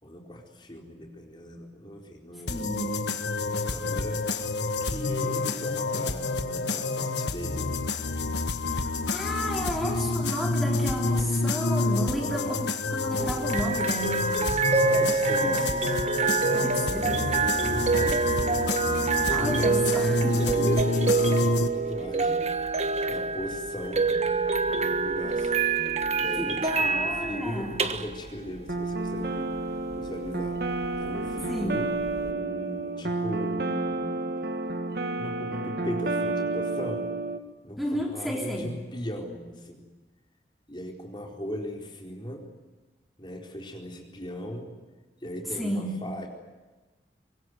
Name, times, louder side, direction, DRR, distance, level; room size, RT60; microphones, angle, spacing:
voice 1, 0.0-2.8 3.5-4.2 4.8-7.7 11.9-12.5 14.8-18.9 20.3-22.5 23.0-24.1 24.8-25.5 26.2-29.5 30.0-30.6 31.0-31.9 32.2-34.2 35.1-37.1 37.6-39.8 40.7-42.5 43.2-44.7 45.2-46.3, equal, 25° left, 1 dB, 4.4 m, -38 dB
sound 1, 2.5-21.7, left 3 dB, 80° left, 1.6 m, -28 dB
voice 2, 2.5-3.0 8.7-14.4 16.5-17.2 19.3-20.4 24.7-24.9 26.4-27.8 31.5-31.8 37.8-38.7 45.6-45.9, equal, ahead, -1 dB, 3.7 m, -32 dB
sound 2, 13.2-32.3, right 4 dB, 40° right, 1.4 m, -27 dB
sound 3, 28.7-37.4, right 2 dB, 60° right, 1.7 m, -30 dB
24.5 x 22.0 x 9.5 m, 1.2 s
head